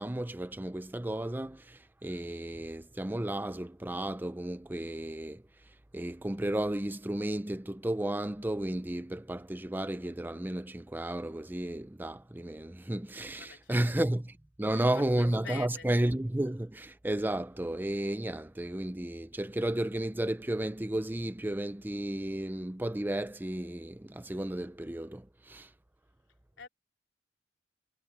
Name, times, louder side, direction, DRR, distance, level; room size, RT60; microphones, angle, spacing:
voice 1, 0.0-5.4 5.9-25.7, right 1 dB, 10° right, 0.5 m, -33 dB
voice 2, 13.4-13.8 14.6-15.8 26.6-26.7, left 5 dB, 70° left, 3.2 m, -46 dB
head